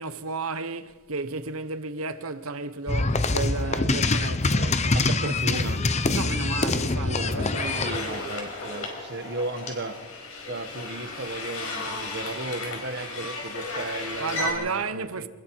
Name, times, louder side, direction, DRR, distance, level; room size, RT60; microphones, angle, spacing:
voice 1, 0.0-5.0 5.2-5.7 6.1-7.9 14.2-15.3, right 4 dB, 75° right, 1.1 m, -33 dB
sound 1, 2.9-8.0, left 3 dB, 30° left, 0.8 m, -24 dB
voice 2, 4.9-5.9 6.7-10.0 10.5-15.3, right 2 dB, 50° right, 1.2 m, -35 dB
sound 2, 7.1-14.7, equal, 60° left, 5.1 m, -41 dB
sound 3, 7.5-14.5, left 3 dB, 80° left, 5.2 m, -35 dB
27.5 x 20.5 x 4.6 m
head